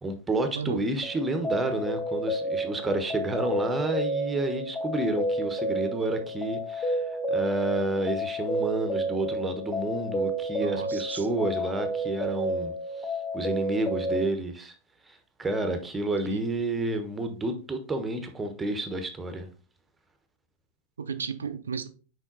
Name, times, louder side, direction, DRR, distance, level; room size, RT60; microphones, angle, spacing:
voice 1, 0.0-12.7 13.0-13.1 13.3-14.7 15.1-19.5, right 2 dB, 15° right, 1.2 m, -30 dB
sound 1, 1.0-14.3, right 1 dB, 15° left, 0.8 m, -31 dB
voice 2, 10.6-11.3 16.2-16.5 21.0-21.9, right 6 dB, 70° right, 0.7 m, -34 dB
6.2 x 4.9 x 4.0 m
figure-of-eight pair, 90°, 0 cm